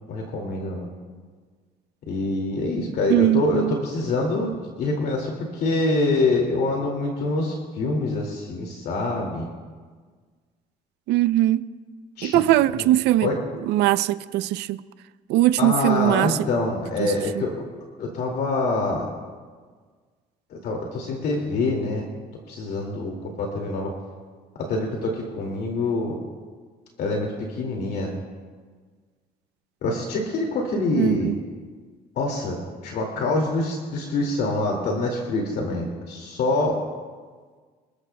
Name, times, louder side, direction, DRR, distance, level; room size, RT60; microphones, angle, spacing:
voice 1, 0.1-0.9 2.1-9.5 12.2-12.4 12.7-12.9 13.2-13.4 15.6-17.5 18.0-19.1 20.5-22.1 22.5-23.9 24.6-26.2 27.0-28.1 29.8-31.3 32.2-32.6 32.8-36.8, left 2 dB, 70° left, 2.3 m, -25 dB
voice 2, 3.1-3.8 11.1-11.6 12.2-13.3 13.6-14.8 15.3-16.5 17.0-17.4 31.0-31.4, right 14 dB, 80° right, 0.5 m, -21 dB
26.5 x 14.0 x 2.2 m
cardioid pair, 110°, 17 cm